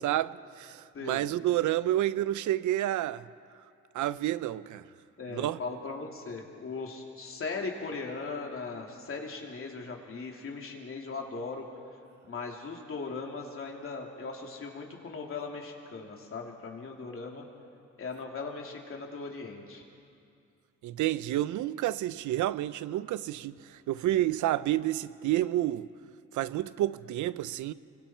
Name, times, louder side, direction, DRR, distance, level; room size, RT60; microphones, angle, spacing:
voice 1, 0.0-3.3 3.9-4.8 5.3-5.6 20.8-25.9 26.3-27.7, right 14 dB, 75° right, 0.6 m, -29 dB
voice 2, 5.2-11.6 12.2-17.5 18.0-19.8, left 4 dB, 45° left, 3.0 m, -38 dB
25.0 x 23.5 x 4.5 m
cardioid pair, 90°, 30 cm